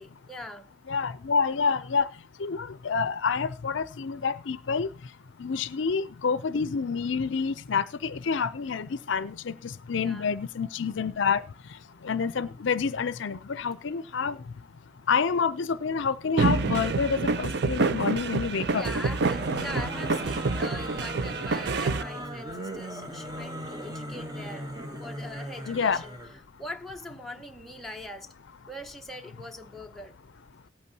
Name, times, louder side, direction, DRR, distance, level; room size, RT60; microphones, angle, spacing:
voice 1, 0.0-0.7 10.0-10.3 18.7-24.7 25.0-26.1 26.6-28.3 28.7-30.2, left 1 dB, ahead, 0.6 m, -41 dB
voice 2, 0.9-2.1 2.4-4.9 5.4-11.4 11.7-14.4 15.1-18.9 25.7-26.0, left 5 dB, 60° left, 0.5 m, -28 dB
sound 1, 16.4-22.0, right 4 dB, 50° right, 0.5 m, -27 dB
sound 2, 19.1-26.4, equal, 20° right, 0.9 m, -38 dB
19.0 x 8.3 x 2.8 m
head